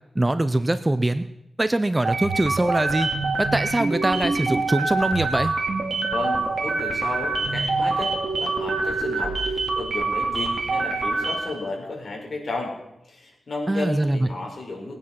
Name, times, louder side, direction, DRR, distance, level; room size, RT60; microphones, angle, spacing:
voice 1, 0.2-1.2 1.6-3.1 3.4-5.5 13.7-14.3, right 1 dB, 15° right, 12 dB, 0.6 m, -23 dB
sound 1, 2.0-11.6, right 3 dB, 55° right, 2.5 m, -25 dB
voice 2, 6.1-8.1 8.4-12.8 13.0-15.0, left 2 dB, 50° left, -1 dB, 4.8 m, -33 dB
20.0 x 9.5 x 5.9 m, 0.85 s
wide cardioid pair, 120°, 0 cm